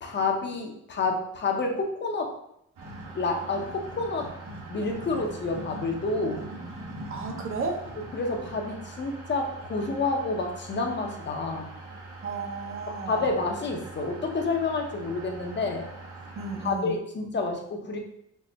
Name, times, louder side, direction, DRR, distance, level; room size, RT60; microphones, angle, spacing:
voice 1, 0.0-2.4 3.1-4.4 4.7-6.4 8.0-11.7 12.9-15.9 16.6-18.0, left 3 dB, 35° left, 2 dB, 0.7 m, -29 dB
sound 1, 2.8-16.7, right 2 dB, 85° right, 1.2 m, -42 dB
voice 2, 7.1-7.8 12.2-13.2 16.4-17.0, right 4 dB, 45° right, 3 dB, 0.7 m, -33 dB
4.3 x 2.0 x 3.2 m, 0.76 s
cardioid pair, 90°, 30 cm